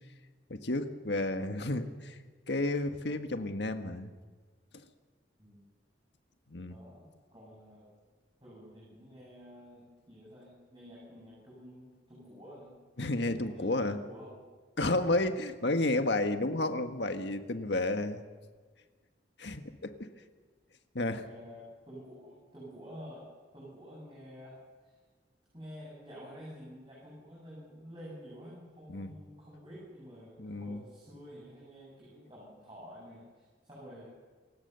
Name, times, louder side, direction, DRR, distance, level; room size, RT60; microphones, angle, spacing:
voice 1, 0.5-2.2 2.5-4.1 4.7-4.8 6.5-6.7 13.0-14.0 14.8-18.2 19.4-20.1 20.9-21.2 28.9-29.1 30.4-30.8, left 2 dB, 75° left, 7 dB, 1.7 m, -31 dB
voice 2, 6.7-7.9 8.4-12.7 13.4-14.4 21.0-23.3 23.5-24.6 24.8-24.9 25.5-34.1, equal, 25° right, -6 dB, 7.9 m, -50 dB
27.5 x 17.0 x 7.0 m, 1.4 s
head